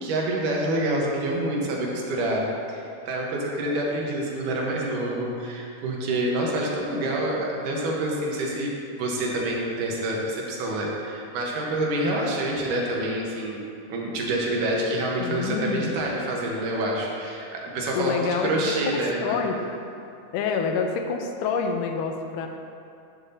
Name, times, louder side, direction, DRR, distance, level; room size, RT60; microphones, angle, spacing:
voice 1, 0.0-13.6 13.9-19.4, right 1 dB, 80° right, -2 dB, 2.6 m, -27 dB
voice 2, 15.2-15.9 18.0-18.8 19.2-19.6 20.3-22.5, left 5 dB, 85° left, 4 dB, 2.2 m, -27 dB
10.5 x 7.5 x 2.7 m, 2.5 s
omnidirectional pair, 3.7 m